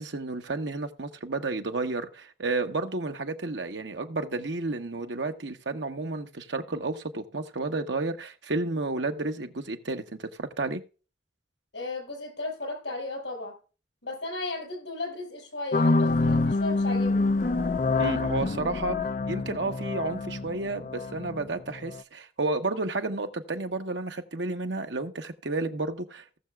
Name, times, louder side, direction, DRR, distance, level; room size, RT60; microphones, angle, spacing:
voice 1, 0.0-10.8 18.0-19.0 19.3-26.4, right 3 dB, 85° right, 1.1 m, -31 dB
voice 2, 11.7-13.5 14.0-17.3, left 2 dB, 90° left, 5.2 m, -35 dB
sound 1, 15.7-22.0, left 3 dB, 45° left, 0.5 m, -26 dB
18.5 x 6.8 x 2.4 m
head